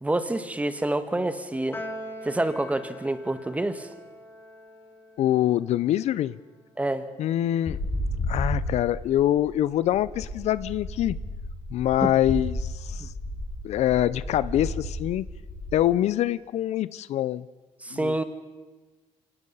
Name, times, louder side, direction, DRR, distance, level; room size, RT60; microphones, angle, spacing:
voice 1, 0.0-1.8 2.2-3.9 6.8-7.1 12.0-12.1 13.0-13.1 17.8-18.2, right 1 dB, 10° right, 10 dB, 1.5 m, -27 dB
Piano, 1.7-8.2, equal, 20° left, 3.6 m, -44 dB
voice 2, 5.2-6.3 7.2-7.8 8.3-11.2 11.7-13.1 13.6-15.3 15.7-17.5 17.9-18.2, left 12 dB, 65° left, 18 dB, 0.5 m, -25 dB
sound 1, 7.7-15.8, left 1 dB, 45° left, 6.2 m, -33 dB
26.0 x 18.0 x 5.6 m, 1.3 s
cardioid pair, 95°, 12 cm